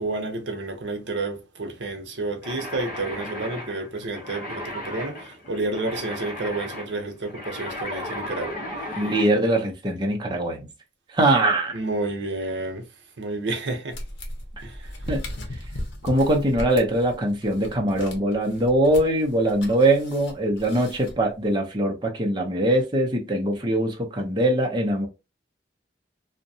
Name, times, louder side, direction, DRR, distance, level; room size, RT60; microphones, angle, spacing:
voice 1, 0.0-8.6 11.7-12.9 13.2-14.0 14.6-14.9, right 2 dB, 70° right, 0.6 m, -30 dB
sound 1, 2.4-9.3, left 1 dB, 50° left, 1.0 m, -35 dB
voice 2, 9.0-10.7 11.1-11.7 15.1-15.2 16.0-25.1, right 1 dB, 25° right, 0.6 m, -22 dB
sound 2, 13.9-21.5, left 1 dB, 85° left, 0.7 m, -37 dB
2.7 x 2.1 x 2.6 m
head